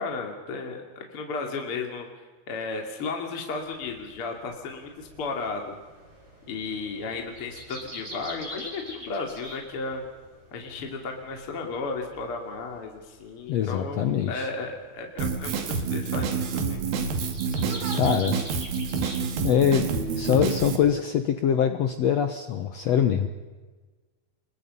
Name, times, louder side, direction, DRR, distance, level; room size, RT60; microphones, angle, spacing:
voice 1, 0.0-5.7 6.4-10.0 10.5-16.8, left 4 dB, 40° left, 2 dB, 3.1 m, -34 dB
sound 1, 3.5-19.4, equal, 15° right, 7.0 m, -45 dB
voice 2, 13.5-14.5 17.9-18.4 19.4-19.9 20.2-23.3, left 9 dB, 75° left, 8 dB, 1.5 m, -23 dB
Drum kit, 15.2-20.8, right 5 dB, 70° right, 3.8 m, -28 dB
29.0 x 21.5 x 5.5 m, 1.3 s
omnidirectional pair, 4.4 m